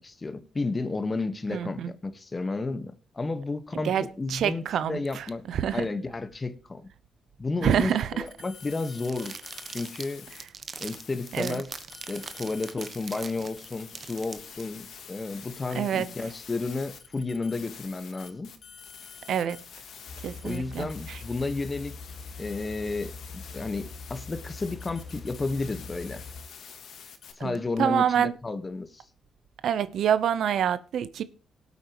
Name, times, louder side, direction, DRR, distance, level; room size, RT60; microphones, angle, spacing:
voice 1, 0.0-5.4 5.7-6.9 7.4-9.4 9.7-10.3 10.8-18.5 20.4-21.9 22.4-26.2 27.4-29.0, left 3 dB, 25° left, 1.3 m, -32 dB
voice 2, 1.5-1.9 3.8-5.9 7.6-8.1 11.3-11.6 15.7-16.1 19.3-19.6 20.2-21.2 27.4-28.3 29.6-31.2, right 9 dB, 70° right, 0.8 m, -27 dB
sound 1, 8.3-10.4 10.7-27.3, left 7 dB, 65° left, 2.3 m, -47 dB
sound 2, 9.0-14.6, right 5 dB, 45° right, 1.2 m, -42 dB
sound 3, 20.1-26.5, left 4 dB, 50° left, 1.8 m, -43 dB
19.0 x 8.4 x 3.0 m
cardioid pair, 100°, 0 cm